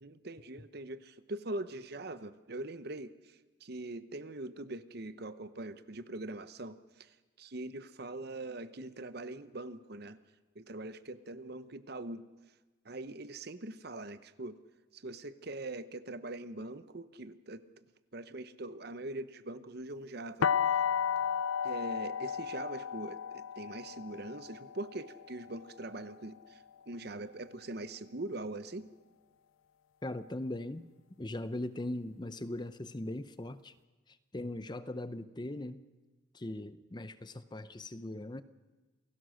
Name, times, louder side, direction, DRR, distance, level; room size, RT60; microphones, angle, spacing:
voice 1, 0.0-7.1 7.4-10.2 10.5-12.3 12.8-14.6 14.9-17.6 18.1-20.8 21.6-28.9, right 2 dB, 55° right, 12 dB, 0.9 m, -42 dB
sound 1, 20.4-26.3, left 8 dB, 90° left, 0.6 m, -33 dB
voice 2, 30.0-30.9 31.2-33.7 34.3-35.8 36.3-38.4, left 1 dB, 20° left, 13 dB, 0.6 m, -39 dB
28.5 x 17.5 x 6.4 m, 1.2 s
head